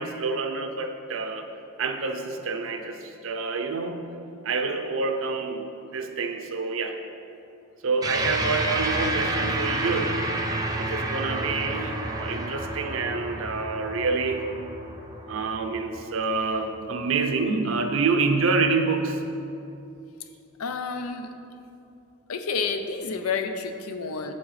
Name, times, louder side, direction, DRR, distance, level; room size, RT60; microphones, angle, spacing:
voice 1, 0.0-1.5 1.8-4.0 4.4-7.0 7.8-10.3 10.8-14.5 15.3-19.2, right 4 dB, 65° right, 6 dB, 0.6 m, -27 dB
sound 1, 8.0-16.7, right 2 dB, 15° right, 0.5 m, -30 dB
voice 2, 20.6-21.3 22.3-24.3, left 5 dB, 85° left, 8 dB, 0.5 m, -30 dB
8.5 x 7.3 x 3.2 m, 2.7 s
head